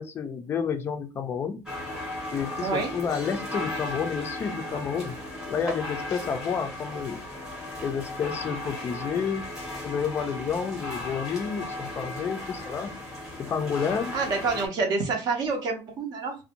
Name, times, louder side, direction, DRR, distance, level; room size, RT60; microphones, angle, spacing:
voice 1, 0.0-1.6 2.3-5.2 5.5-7.2 7.8-9.4 9.8-12.9 13.4-14.1, left 6 dB, 25° left, 0.3 m, -30 dB
sound 1, 1.7-14.7, left 1 dB, 5° right, 0.8 m, -36 dB
voice 2, 2.6-2.9 14.1-16.4, right 4 dB, 45° right, 0.6 m, -27 dB
2.5 x 2.1 x 2.8 m
cardioid pair, 175°, 10 cm